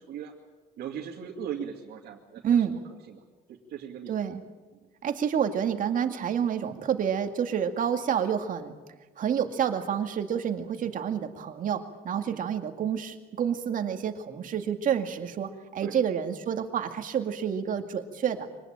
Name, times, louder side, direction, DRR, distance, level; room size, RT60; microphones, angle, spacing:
voice 1, 0.8-2.4 3.1-3.2 3.5-4.1 4.7-4.9 10.8-10.9 12.2-12.4 15.8-15.9, right 8 dB, 70° right, -1 dB, 2.6 m, -38 dB
voice 2, 2.4-2.8 4.1-4.4 5.0-8.7 9.2-18.5, right 8 dB, 50° right, 6 dB, 2.3 m, -28 dB
24.5 x 19.5 x 8.9 m, 1.3 s
cardioid pair, 110°, 17 cm